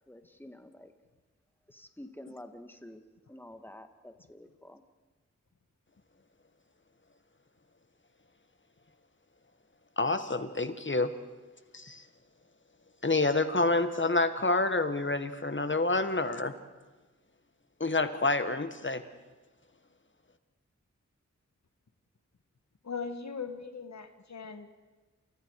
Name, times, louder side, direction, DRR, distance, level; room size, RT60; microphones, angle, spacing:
voice 1, 0.1-0.9 1.7-3.0 3.3-4.8, left 1 dB, 5° left, 7 dB, 2.0 m, -49 dB
voice 2, 10.0-11.1 11.7-12.0 13.0-16.5 17.8-19.0, left 2 dB, 40° left, 10 dB, 1.8 m, -28 dB
voice 3, 22.8-24.8, left 5 dB, 70° left, 8 dB, 1.6 m, -39 dB
29.0 x 28.0 x 4.9 m, 1.2 s
wide cardioid pair, 50°, 29 cm